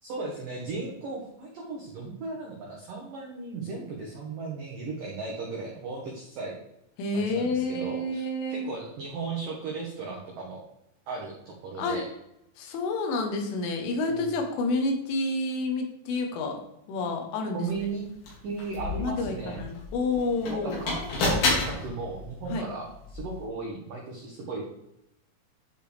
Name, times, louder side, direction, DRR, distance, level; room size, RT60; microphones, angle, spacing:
voice 1, 0.0-6.6 7.1-8.2 8.5-10.6 11.1-12.0 17.5-18.1 18.4-19.6 20.5-21.4 21.7-24.6, right 4 dB, 85° right, -2 dB, 1.9 m, -36 dB
voice 2, 7.0-8.7 11.8-12.0 12.6-16.6 16.9-17.7 19.0-20.8 22.5-22.7, left 2 dB, 75° left, 3 dB, 3.4 m, -29 dB
sound 1, 17.7-17.8 18.2-23.4, left 2 dB, 55° left, 4.0 m, -31 dB
11.0 x 5.2 x 3.4 m, 0.82 s
omnidirectional pair, 6.0 m